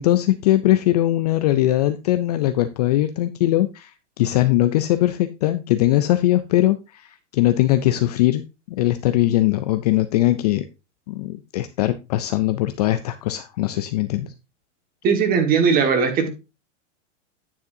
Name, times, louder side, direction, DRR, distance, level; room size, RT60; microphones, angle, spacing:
voice 1, 0.0-3.9 4.2-8.4 8.8-10.6 11.1-14.3, left 14 dB, 35° left, 11 dB, 0.4 m, -20 dB
voice 2, 15.0-16.3, right 6 dB, 25° right, 6 dB, 1.5 m, -18 dB
9.5 x 7.3 x 2.6 m, 0.26 s
supercardioid pair, 155°, 37 cm